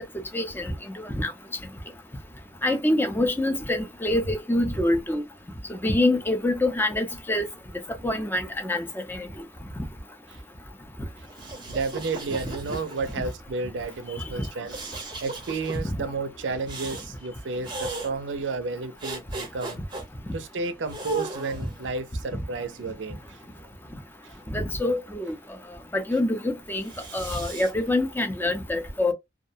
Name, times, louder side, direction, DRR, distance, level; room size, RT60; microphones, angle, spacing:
voice 1, 0.3-0.7 1.0-1.3 2.6-5.2 5.7-7.5 8.0-9.3 22.3-22.4 24.5-25.3 25.9-29.1, left 1 dB, 10° left, 0.5 m, -25 dB
voice 2, 11.2-19.8 20.3-23.4 24.2-24.4, right 4 dB, 90° right, 0.5 m, -32 dB
sound 1, 11.3-13.3 14.7-15.8 16.7-17.1 17.6-18.1 19.0-20.0 20.9-21.8 22.6-23.7 26.8-27.7, right 2 dB, 25° right, 0.7 m, -37 dB
2.3 x 2.1 x 2.7 m
head